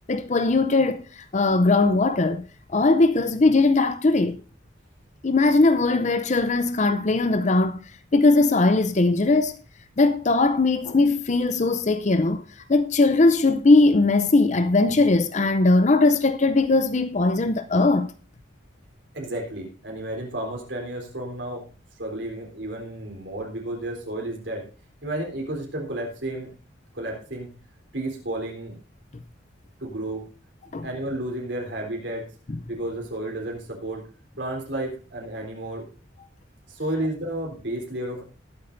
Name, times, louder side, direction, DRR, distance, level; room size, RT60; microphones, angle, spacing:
voice 1, 0.1-2.5 2.7-4.4 5.2-7.8 8.1-9.6 10.0-12.4 12.7-18.1 30.7-30.9 32.5-32.6, left 3 dB, 40° left, 0.6 m, -20 dB
voice 2, 19.1-21.6 22.0-24.6 25.0-26.5 26.9-27.5 27.9-28.7 29.8-30.2 30.8-32.3 32.7-34.1 34.4-35.9 36.7-38.2, right 1 dB, 70° right, 3.7 m, -32 dB
20.0 x 8.6 x 2.6 m
head